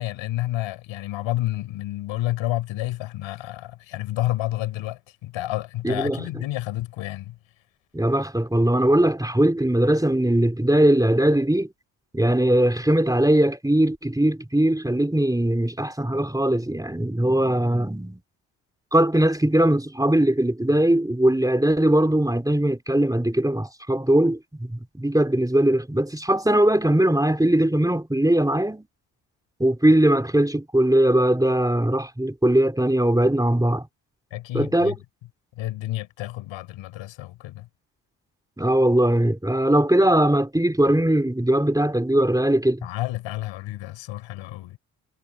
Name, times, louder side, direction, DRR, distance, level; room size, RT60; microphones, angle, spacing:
voice 1, 0.0-7.4 34.3-35.0 35.6-37.7 42.8-44.8, left 15 dB, 85° left, 7.3 m, -30 dB
voice 2, 5.8-6.2 7.9-11.7 12.1-18.2 18.9-28.9 29.6-33.9 34.5-35.0 38.6-42.9, right 1 dB, 10° right, 3.0 m, -20 dB
supercardioid pair, 55°, 46 cm